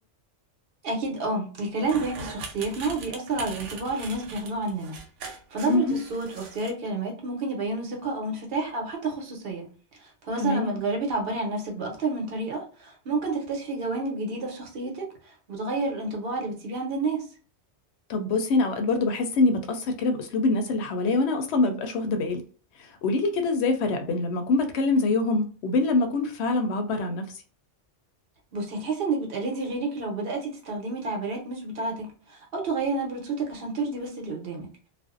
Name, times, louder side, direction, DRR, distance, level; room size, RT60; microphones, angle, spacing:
voice 1, 0.8-5.0 5.2-9.7 10.0-17.3 28.5-34.7, right 3 dB, 55° right, 1.0 m, -30 dB
sound 1, 1.8-6.7, right 4 dB, 85° right, 0.9 m, -40 dB
voice 2, 5.7-6.0 10.4-10.7 18.1-22.4 23.0-27.2, left 3 dB, 70° left, 0.8 m, -24 dB
2.5 x 2.1 x 2.4 m
omnidirectional pair, 1.2 m